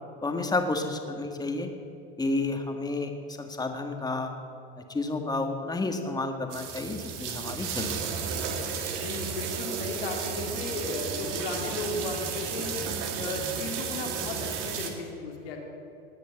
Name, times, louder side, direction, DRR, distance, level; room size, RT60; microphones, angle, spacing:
voice 1, 0.2-1.7 2.2-3.1 3.4-4.3 4.9-7.9, left 2 dB, 15° left, 5 dB, 1.7 m, -30 dB
sound 1, 6.5-14.9, right 6 dB, 65° right, 2.2 m, -33 dB
voice 2, 8.9-12.7 13.2-15.6, left 3 dB, 90° left, 1 dB, 2.6 m, -35 dB
19.5 x 6.7 x 8.0 m, 2.6 s
supercardioid pair, 105°, 29 cm